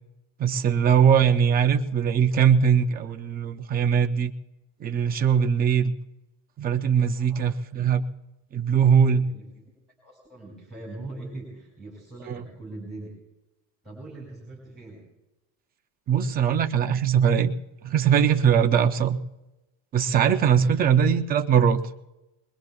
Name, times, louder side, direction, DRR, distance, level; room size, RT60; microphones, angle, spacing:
voice 1, 0.4-4.3 4.8-5.9 6.6-8.1 8.5-9.3 12.3-12.4 16.1-17.5 17.8-19.2 19.9-21.8, right 7 dB, 20° right, 6 dB, 0.4 m, -21 dB
voice 2, 7.1-7.5 9.1-9.7 10.0-13.1 13.8-15.1 20.5-21.2, right 2 dB, ahead, -2 dB, 5.1 m, -42 dB
23.0 x 22.0 x 2.3 m, 0.98 s
cardioid pair, 180°, 45 cm